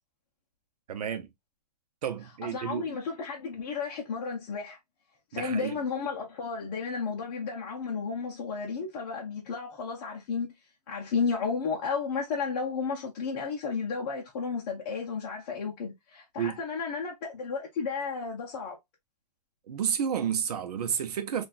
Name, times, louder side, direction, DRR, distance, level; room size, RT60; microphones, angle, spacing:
voice 1, 0.9-1.3 2.0-2.9 5.3-5.8 16.4-16.6 19.7-21.5, right 8 dB, 70° right, 0.7 m, -31 dB
voice 2, 2.5-4.8 5.3-10.6 10.9-18.8, left 5 dB, 30° left, 0.7 m, -33 dB
3.9 x 2.5 x 2.4 m
hypercardioid pair, 175°, 20 cm